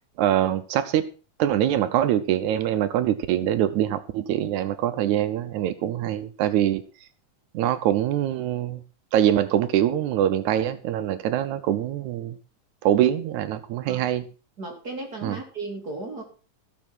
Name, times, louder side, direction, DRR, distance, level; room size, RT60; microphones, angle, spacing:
voice 1, 0.2-1.1 1.4-6.8 7.5-8.8 9.1-12.4 12.8-14.2 15.2-15.4, right 11 dB, 85° right, 12 dB, 2.2 m, -24 dB
voice 2, 14.6-16.2, right 2 dB, 35° right, 1 dB, 3.3 m, -35 dB
15.5 x 7.4 x 6.0 m, 0.35 s
omnidirectional pair, 3.3 m